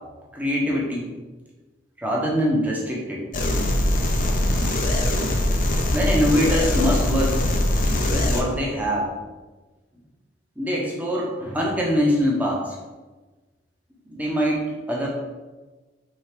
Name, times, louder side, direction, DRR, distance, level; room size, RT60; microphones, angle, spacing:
voice 1, 0.3-1.1 2.0-3.2 5.9-7.4 8.0-9.1 10.6-12.8 14.0-15.1, equal, 10° right, -3 dB, 1.1 m, -23 dB
sound 1, 3.3-8.4, left 1 dB, 45° left, 0.7 m, -22 dB
4.8 x 3.9 x 5.1 m, 1.2 s
head